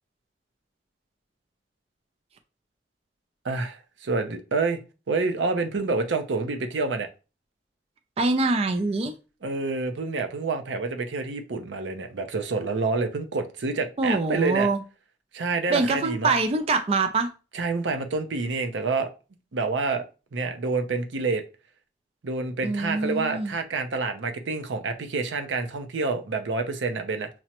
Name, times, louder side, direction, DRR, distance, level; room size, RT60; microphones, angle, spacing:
voice 1, 3.4-4.8 5.1-7.1 9.4-14.7 15.3-16.4 17.5-19.1 19.5-20.0 20.3-21.4 22.2-27.3, right 3 dB, 90° right, 0.6 m, -28 dB
voice 2, 8.2-9.1 14.0-14.8 15.7-17.3 22.6-23.5, right 3 dB, 35° right, 0.3 m, -24 dB
5.9 x 2.1 x 2.8 m
head